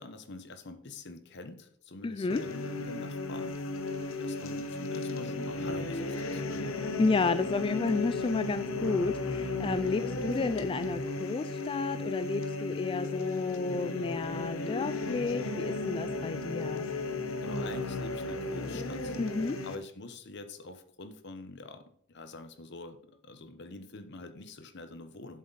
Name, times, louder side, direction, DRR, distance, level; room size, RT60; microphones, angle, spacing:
voice 1, 0.0-3.6 4.2-6.8 17.4-19.2 19.6-25.4, left 3 dB, 60° left, 9 dB, 1.1 m, -46 dB
voice 2, 2.0-2.4 7.0-16.9 19.2-19.6, left 3 dB, 25° left, 12 dB, 0.3 m, -31 dB
sound 1, 2.3-19.8, left 2 dB, 85° left, 1.0 m, -35 dB
11.0 x 7.5 x 4.1 m, 0.65 s
head